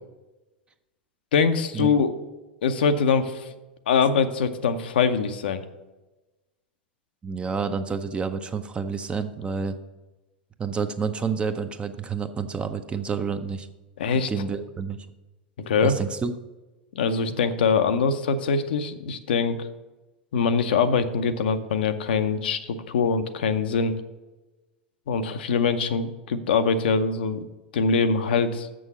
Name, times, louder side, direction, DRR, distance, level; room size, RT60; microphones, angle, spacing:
voice 1, 1.3-2.1 2.6-3.5 3.9-5.6 14.0-14.3 15.7-16.0 16.9-19.6 20.3-23.9 25.1-27.4 27.7-28.7, left 5 dB, 65° left, 9 dB, 0.7 m, -23 dB
voice 2, 7.2-9.8 10.6-13.7 14.3-15.1 15.8-16.3, right 5 dB, 20° right, 9 dB, 0.6 m, -29 dB
7.1 x 6.2 x 6.7 m, 1.1 s
figure-of-eight pair, 90°, 6 cm